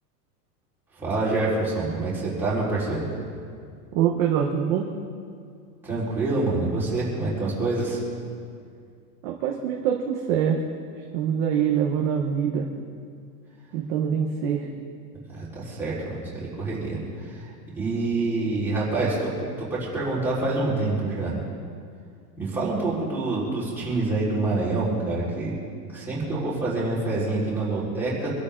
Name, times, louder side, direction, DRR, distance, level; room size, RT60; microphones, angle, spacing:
voice 1, 1.0-3.1 5.8-8.0 15.3-17.5 17.8-19.3 19.6-21.4 22.4-25.6 25.9-28.3, right 2 dB, 5° right, -9 dB, 4.1 m, -26 dB
voice 2, 3.9-4.9 9.2-10.6 11.1-12.7 13.7-14.7, right 8 dB, 20° right, 0 dB, 0.7 m, -24 dB
26.0 x 12.0 x 3.7 m, 2.2 s
supercardioid pair, 180°, 49 cm